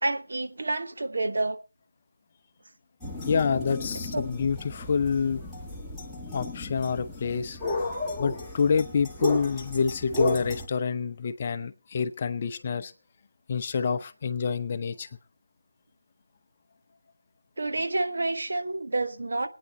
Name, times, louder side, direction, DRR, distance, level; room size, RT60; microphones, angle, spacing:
voice 1, 0.0-1.6 4.1-4.2 17.6-19.5, right 2 dB, 60° right, 1.3 m, -29 dB
sound 1, 3.0-10.7, left 2 dB, 5° left, 1.3 m, -33 dB
voice 2, 3.3-5.4 6.3-7.6 8.2-12.9 13.5-15.1, left 6 dB, 25° left, 0.7 m, -27 dB
20.0 x 9.4 x 5.4 m
figure-of-eight pair, 170°, 0 cm